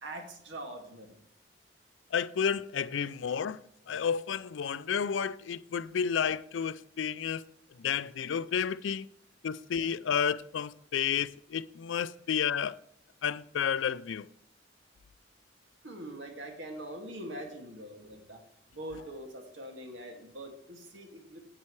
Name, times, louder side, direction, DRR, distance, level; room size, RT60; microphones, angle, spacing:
voice 1, 0.0-1.1 15.8-18.4 18.8-21.5, right 1 dB, 80° right, 2.1 m, -43 dB
voice 2, 2.1-3.6 3.9-7.4 7.8-9.1 9.4-12.8 13.2-14.3, left 7 dB, 90° left, 0.4 m, -31 dB
9.9 x 8.4 x 3.2 m
head